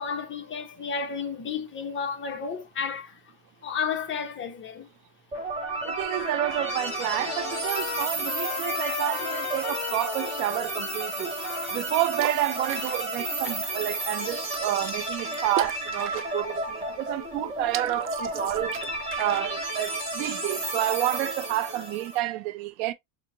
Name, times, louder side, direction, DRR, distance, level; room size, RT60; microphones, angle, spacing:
voice 1, 0.0-3.2 3.6-4.9, left 6 dB, 25° left, 0.7 m, -32 dB
Trumpet, 5.3-13.0, left 14 dB, 70° left, 0.5 m, -38 dB
sound 1, 5.3-22.2, right 2 dB, 15° right, 1.3 m, -32 dB
voice 2, 5.8-11.4 11.7-18.8 19.2-22.9, right 15 dB, 70° right, 0.7 m, -29 dB
sound 2, 11.1-21.6, right 10 dB, 30° right, 0.4 m, -42 dB
5.2 x 2.1 x 2.6 m
supercardioid pair, 125°, 44 cm